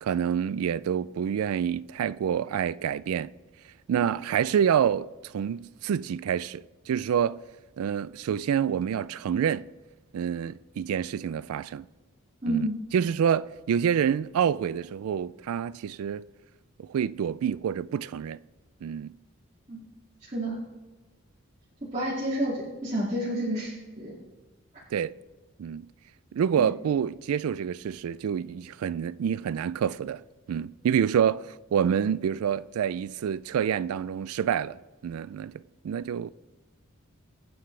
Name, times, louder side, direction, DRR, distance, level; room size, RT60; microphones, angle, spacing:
voice 1, 0.0-3.3 3.9-7.4 7.8-9.7 10.1-11.8 12.5-16.2 16.8-18.4 18.8-19.2 24.9-25.2 25.6-25.9 26.3-30.2 30.5-36.3, right 8 dB, 90° right, 0.3 m, -27 dB
voice 2, 12.4-12.7 19.7-19.8 20.3-20.6 21.9-24.1 26.6-26.7, right 1 dB, 30° right, 2.3 m, -29 dB
23.0 x 9.5 x 3.3 m
head